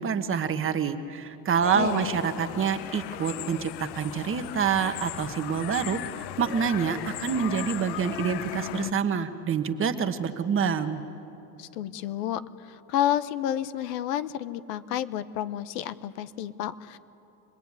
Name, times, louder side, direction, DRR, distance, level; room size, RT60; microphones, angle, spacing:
voice 1, 0.0-11.0, right 7 dB, 25° right, 8 dB, 1.3 m, -27 dB
sound 1, 1.6-8.9, left 14 dB, 55° left, 0.8 m, -37 dB
voice 2, 1.7-2.2 11.6-12.4 12.7-17.0, left 11 dB, 90° left, 13 dB, 1.1 m, -30 dB
25.5 x 19.5 x 9.7 m, 2.9 s
supercardioid pair, 135°, 47 cm